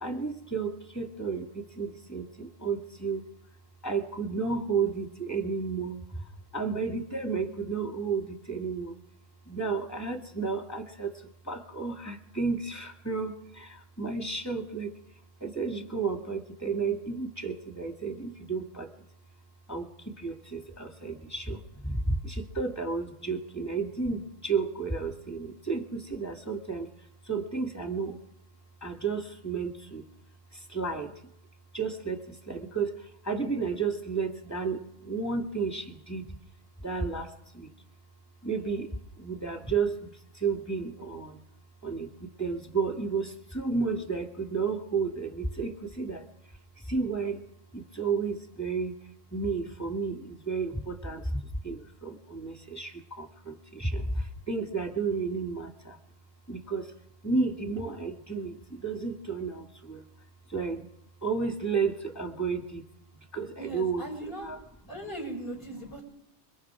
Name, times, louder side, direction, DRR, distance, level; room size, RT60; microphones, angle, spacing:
voice 1, 0.0-3.2 3.8-6.2 6.5-8.9 9.5-14.9 15.4-18.9 19.7-26.9 27.3-28.2 28.8-30.0 30.5-31.1 31.7-36.3 36.8-37.7 38.4-38.9 39.2-41.4 41.8-46.3 46.8-47.4 47.7-48.9 49.3-56.0 56.5-56.9 57.2-60.0 60.5-60.9 61.2-62.8 63.3-64.1 64.4-64.6, right 4 dB, 15° left, 3 dB, 2.4 m, -32 dB
voice 2, 63.6-64.5 64.9-66.0, right 1 dB, 50° left, 2 dB, 6.2 m, -38 dB
26.0 x 23.5 x 4.9 m, 0.79 s
omnidirectional pair, 1.2 m